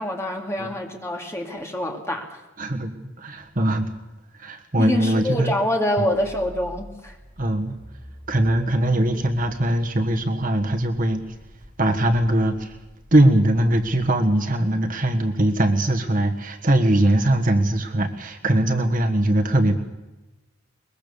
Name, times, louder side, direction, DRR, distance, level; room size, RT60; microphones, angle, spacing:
voice 1, 0.0-2.4 4.8-7.2, left 1 dB, 15° left, 1 dB, 2.4 m, -26 dB
voice 2, 2.6-2.9 3.2-3.9 4.3-5.5 6.0-6.1 7.4-7.8 8.3-11.2 11.8-12.8 13.1-19.8, right 1 dB, 40° right, 5 dB, 1.4 m, -21 dB
sound 1, 6.1-14.1, equal, 20° right, 4.3 m, -46 dB
22.0 x 21.0 x 7.0 m, 1.1 s
head